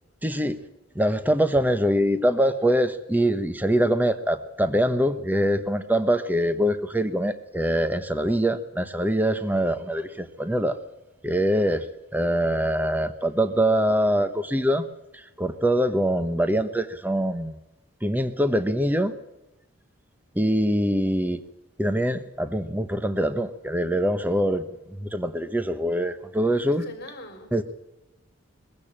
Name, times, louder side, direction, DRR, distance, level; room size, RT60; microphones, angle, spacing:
voice 1, 0.2-0.6 0.9-10.8 11.2-11.9 12.1-14.9 15.1-17.6 18.0-19.1 20.3-21.4 21.8-24.6 25.0-26.9 27.5-27.6, equal, 10° right, 1.0 m, -23 dB
voice 2, 26.8-27.6, left 1 dB, 45° left, 4.7 m, -42 dB
22.0 x 15.5 x 8.8 m
head